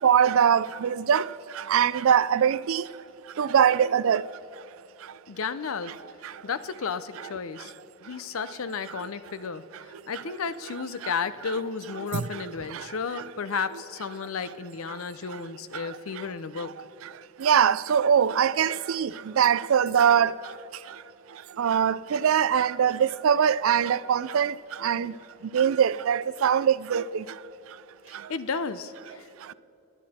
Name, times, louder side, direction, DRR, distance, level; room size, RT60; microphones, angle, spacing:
voice 1, 0.0-1.2 1.7-2.8 3.4-4.2 17.4-19.1 19.4-20.3 21.6-24.5 24.8-25.1 25.5-27.0, right 8 dB, 75° right, 0.4 m, -22 dB
voice 2, 5.3-5.9 6.4-7.7 8.0-9.6 10.1-16.7 25.0-25.2 28.1-29.5, left 5 dB, 80° left, 0.6 m, -33 dB
21.0 x 9.7 x 4.3 m
head